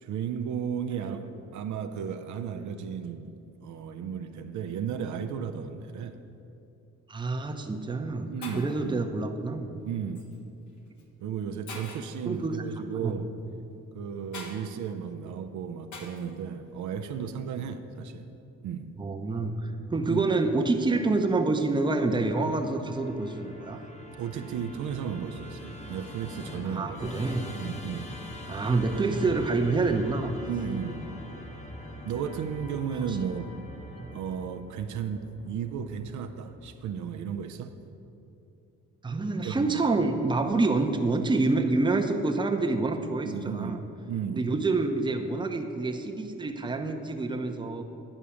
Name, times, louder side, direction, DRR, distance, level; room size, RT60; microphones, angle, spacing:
voice 1, 0.0-6.2 8.3-9.0 9.8-10.3 11.2-13.3 13.9-18.3 18.6-18.9 20.1-20.3 24.2-27.1 27.5-28.1 30.4-31.0 32.0-33.5 34.1-37.7 39.4-39.8 43.2-44.5, right 7 dB, 70° right, 7 dB, 0.6 m, -34 dB
voice 2, 7.1-8.3 8.6-9.8 12.3-12.5 13.0-13.2 19.0-23.8 26.6-27.4 28.5-30.3 34.0-34.1 39.0-43.8 44.3-47.8, right 3 dB, 15° right, 4 dB, 0.7 m, -27 dB
Shatter, 7.2-7.4 8.1-8.2 8.4-8.9 10.1-10.4 11.0-11.1 11.7-12.2 14.3-14.6 15.9-16.3, left 2 dB, 75° left, 1.4 m, -42 dB
Musical instrument, 22.1-37.3, left 1 dB, 20° left, 0.9 m, -43 dB
9.9 x 4.9 x 7.0 m, 2.7 s
cardioid pair, 90°, 30 cm